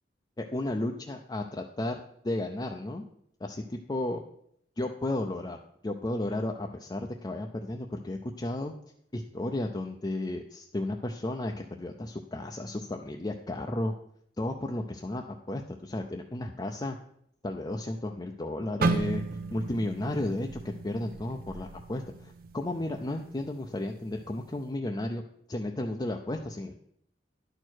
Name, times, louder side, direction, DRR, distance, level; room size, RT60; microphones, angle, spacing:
voice 1, 0.4-3.1 3.4-4.2 4.8-5.6 5.8-8.7 9.1-13.9 14.4-17.0 17.4-19.2 19.5-25.2 25.5-26.7, left 1 dB, 25° left, 3 dB, 0.5 m, -33 dB
sound 1, 18.8-22.8 23.2-23.5 24.1-24.4, right 3 dB, 55° right, 0.6 m, -33 dB
11.0 x 4.6 x 6.2 m, 0.70 s
head